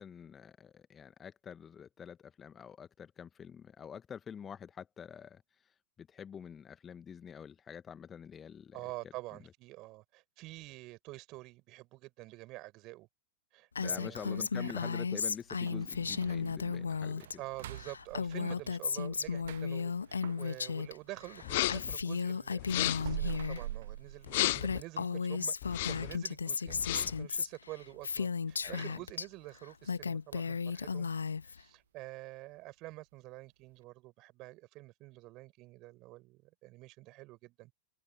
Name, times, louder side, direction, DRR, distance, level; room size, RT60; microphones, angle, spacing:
voice 1, 0.0-8.9 13.8-17.3 28.6-28.9, left 7 dB, 20° left, 1.3 m, -47 dB
voice 2, 8.7-13.1 13.5-14.9 17.4-31.1 31.4-37.7, right 20 dB, 40° right, 7.4 m, -48 dB
Female speech woman speaking, 13.8-17.4 17.6-20.9 21.2-23.6 24.2-24.3 24.6-29.3 29.7-31.6, left 5 dB, 75° left, 1.6 m, -35 dB
sound 1, 15.6-21.6 22.0-24.8 25.2-25.3 25.8-25.9 26.4-26.7 27.0-27.1 27.7-27.8, right 13 dB, 55° right, 0.7 m, -45 dB
sound 2, 21.4-22.0 22.6-23.2 24.3-24.8 25.6-26.2 26.7-27.2, left 18 dB, 55° left, 0.4 m, -33 dB
figure-of-eight pair, 90°, 0 cm